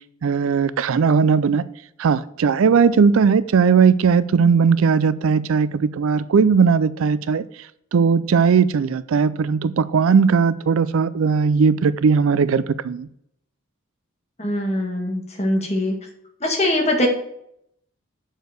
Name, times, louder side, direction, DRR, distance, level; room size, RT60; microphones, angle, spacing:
voice 1, 0.2-1.6 2.0-7.4 7.9-13.1, right 5 dB, 75° right, 0.4 m, -18 dB
voice 2, 14.4-15.9 16.4-17.1, left 1 dB, 30° left, 1.6 m, -22 dB
6.5 x 4.6 x 6.6 m
head